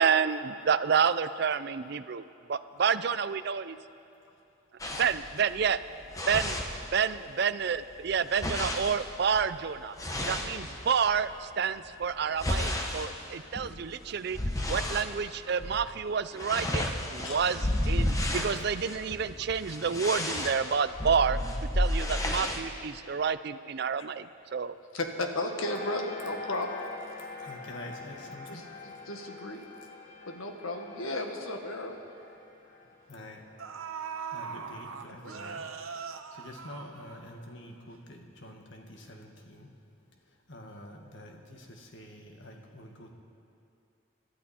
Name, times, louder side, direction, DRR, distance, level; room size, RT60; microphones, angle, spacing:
voice 1, 0.0-2.2 2.5-3.7 5.0-5.8 6.3-6.6 6.9-9.9 10.2-14.4 14.7-16.9 17.1-21.4 21.8-24.7, right 6 dB, 50° right, 14 dB, 0.4 m, -29 dB
sound 1, 4.8-7.3 7.6-11.2 11.8-15.1 15.5-15.8 16.1-22.6, left 1 dB, 15° left, 1.0 m, -32 dB
voice 2, 24.9-26.8 28.5-28.6 29.1-29.6 30.3-32.0, left 2 dB, 85° left, 3 dB, 1.6 m, -34 dB
sound 2, 25.6-34.6, left 3 dB, 35° left, 2.4 m, -45 dB
voice 3, 27.2-29.0 33.1-33.6 34.1-35.7 36.0-39.8 40.1-43.1, left 1 dB, 60° left, 2 dB, 1.8 m, -47 dB
sound 3, 31.4-31.5 31.9-32.1 33.1-33.2 33.6-37.5 37.9-38.0, right 6 dB, 85° right, 1.0 m, -40 dB
26.5 x 12.5 x 4.4 m, 2.6 s
head